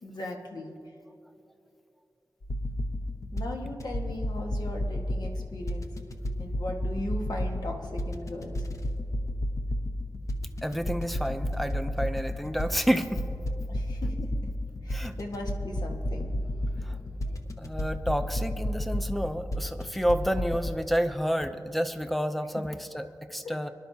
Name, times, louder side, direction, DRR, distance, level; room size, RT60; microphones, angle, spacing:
voice 1, 0.0-0.7 3.3-5.9 6.4-8.6 13.7-14.3 14.8-17.2 23.4-23.6, left 1 dB, 70° left, 1 dB, 1.5 m, -38 dB
sound 1, 2.4-20.7, left 1 dB, 50° left, 0.9 m, -31 dB
voice 2, 10.6-13.2 14.9-15.1 17.6-23.7, equal, ahead, 9 dB, 0.5 m, -29 dB
23.0 x 11.5 x 2.8 m, 2.7 s
wide cardioid pair, 130°, 7 cm